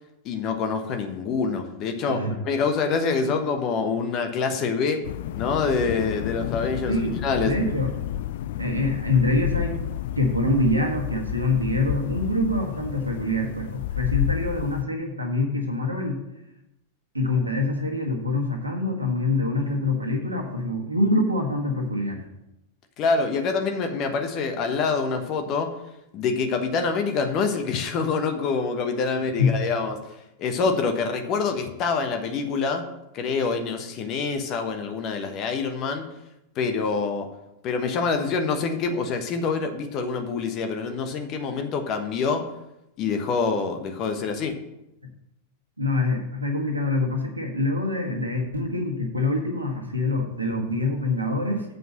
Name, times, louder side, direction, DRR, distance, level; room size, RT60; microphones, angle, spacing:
voice 1, 0.2-7.5 23.0-25.8 26.1-36.1 36.5-37.3 37.6-42.6 43.0-44.5, left 4 dB, 35° left, 5 dB, 1.1 m, -26 dB
sound 1, 5.0-14.8, left 12 dB, 55° left, 0.4 m, -31 dB
voice 2, 6.9-7.9 8.6-9.8 10.1-16.2 17.1-22.2 29.4-29.5 45.8-51.6, left 2 dB, 85° right, 1 dB, 1.6 m, -25 dB
7.7 x 5.3 x 7.4 m, 0.88 s
figure-of-eight pair, 90°, 0 cm